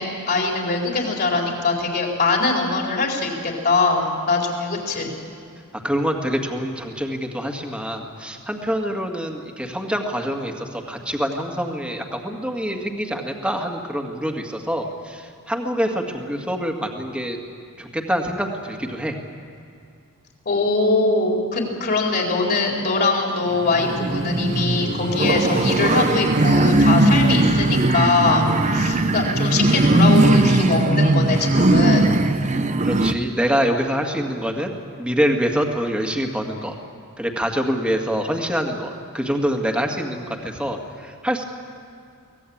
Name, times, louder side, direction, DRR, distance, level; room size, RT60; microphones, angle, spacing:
voice 1, 0.0-5.1 20.4-32.2, left 3 dB, 45° left, 0 dB, 4.4 m, -22 dB
voice 2, 5.8-17.4 17.8-19.2 32.8-34.7 35.0-36.8 37.2-41.4, equal, 5° right, 2 dB, 2.0 m, -25 dB
sound 1, 23.5-33.1, right 2 dB, 30° right, 0.8 m, -18 dB
24.0 x 18.0 x 8.8 m, 2.4 s
head